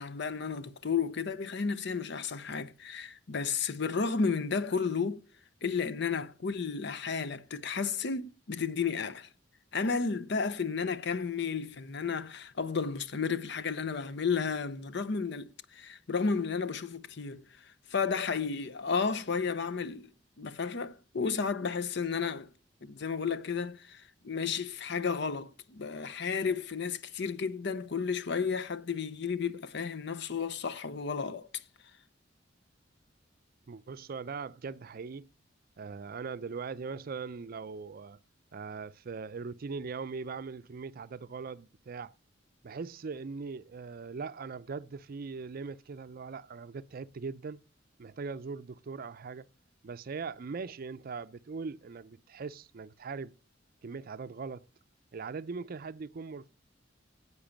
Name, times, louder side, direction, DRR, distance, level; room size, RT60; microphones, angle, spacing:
voice 1, 0.0-5.2 5.6-9.3 9.7-20.1 20.4-22.5 22.8-31.6, left 5 dB, 65° left, 0.7 m, -33 dB
voice 2, 33.7-35.3 35.8-38.2 38.5-42.1 42.6-47.6 48.0-49.4 49.8-53.3 53.8-54.6 55.1-56.5, right 4 dB, 50° right, 0.5 m, -40 dB
10.0 x 8.2 x 7.1 m
head